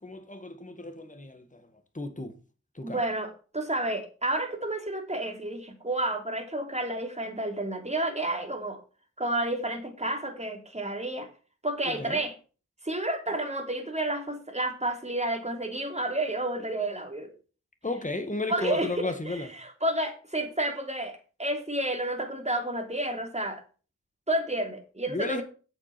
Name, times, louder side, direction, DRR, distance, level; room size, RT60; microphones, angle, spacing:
voice 1, 0.0-1.7 1.9-2.3 2.7-3.0 11.9-12.2 17.8-19.5 25.1-25.4, left 2 dB, 25° left, 2.0 m, -34 dB
voice 2, 2.8-8.8 9.2-11.3 11.6-12.3 12.8-17.3 18.5-23.6 24.3-25.4, right 1 dB, 25° right, 3.1 m, -30 dB
8.7 x 7.2 x 6.0 m
cardioid pair, 45°, 29 cm